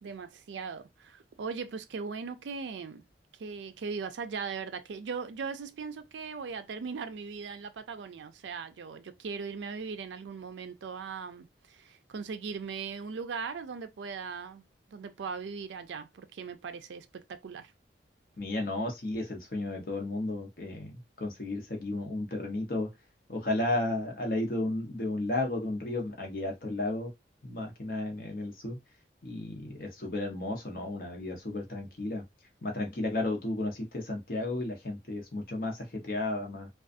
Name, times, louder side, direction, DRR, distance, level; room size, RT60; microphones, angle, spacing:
voice 1, 0.0-3.0 3.4-17.7, right 5 dB, 85° right, 0.4 m, -39 dB
voice 2, 18.4-22.9 23.3-27.1 27.4-28.8 29.2-32.3 32.6-36.7, left 2 dB, 50° left, 0.7 m, -33 dB
2.5 x 2.3 x 2.4 m
head